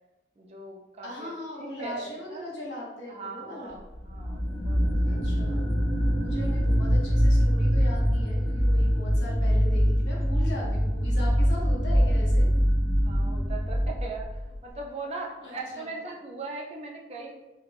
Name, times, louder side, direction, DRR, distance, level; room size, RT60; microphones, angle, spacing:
voice 1, 0.4-1.3 1.6-2.4 3.1-3.8 4.1-5.4 13.0-17.4, right 3 dB, 35° right, 0 dB, 0.3 m, -39 dB
voice 2, 1.0-3.8 5.0-5.6 6.2-12.5 15.4-15.9, left 1 dB, 85° left, -3 dB, 0.8 m, -39 dB
sound 1, 3.9-14.6, equal, 35° left, 0.6 m, -24 dB
2.4 x 2.1 x 3.3 m, 1.1 s
head